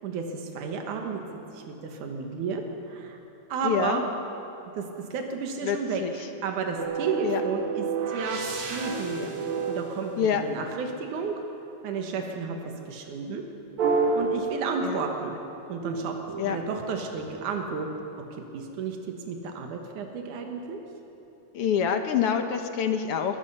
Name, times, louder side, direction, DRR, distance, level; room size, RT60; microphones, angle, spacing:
voice 1, 0.0-1.2 1.5-3.2 3.5-4.0 4.7-4.8 5.1-6.0 6.4-8.4 8.7-9.3 9.7-11.4 11.8-12.6 12.9-13.4 14.1-15.4 15.7-16.1 16.5-17.9 18.5-19.0 19.3-20.8, right 5 dB, 85° right, 3 dB, 2.9 m, -32 dB
voice 2, 3.6-4.0 5.6-6.1 7.2-7.4 10.2-10.4 14.8-15.0 16.4-16.6 21.5-23.4, left 8 dB, 65° left, 7 dB, 1.7 m, -26 dB
sound 1, 6.8-10.9 13.8-15.3 15.8-17.6, right 4 dB, 70° right, 3.2 m, -30 dB
22.5 x 21.0 x 5.6 m, 3.0 s
omnidirectional pair, 3.4 m